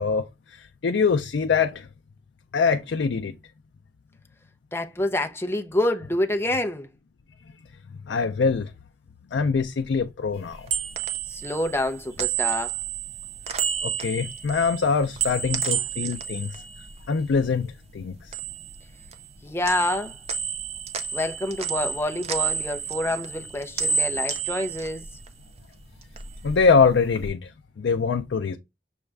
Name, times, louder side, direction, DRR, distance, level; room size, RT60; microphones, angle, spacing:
voice 1, 0.0-1.9 2.5-3.3 8.1-8.7 9.3-10.7 13.8-16.6 17.1-18.4 26.4-28.6, left 5 dB, 85° left, 0.4 m, -24 dB
voice 2, 4.7-6.9 11.3-12.7 19.4-20.2 21.1-25.0, left 1 dB, 15° left, 0.5 m, -27 dB
sound 1, 10.4-17.7 18.0-19.4 19.6-25.6 26.0-27.3, right 8 dB, 35° right, 0.5 m, -31 dB
6.3 x 2.4 x 3.3 m
head